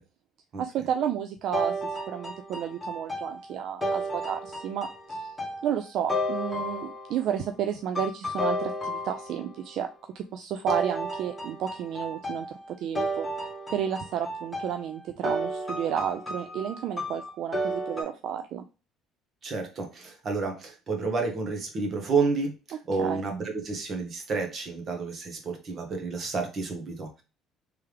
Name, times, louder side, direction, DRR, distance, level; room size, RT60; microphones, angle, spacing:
voice 1, 0.6-5.3 5.6-9.9 10.1-12.5 12.8-13.3 13.7-18.6 23.0-23.2, right 9 dB, 60° right, 7 dB, 0.3 m, -32 dB
sound 1, 1.5-7.3 8.0-9.6 10.7-18.0, equal, 10° left, 1.2 m, -33 dB
voice 2, 19.4-27.2, right 4 dB, 40° right, 3 dB, 1.2 m, -30 dB
3.4 x 3.3 x 3.3 m, 0.32 s
cardioid pair, 135°, 0 cm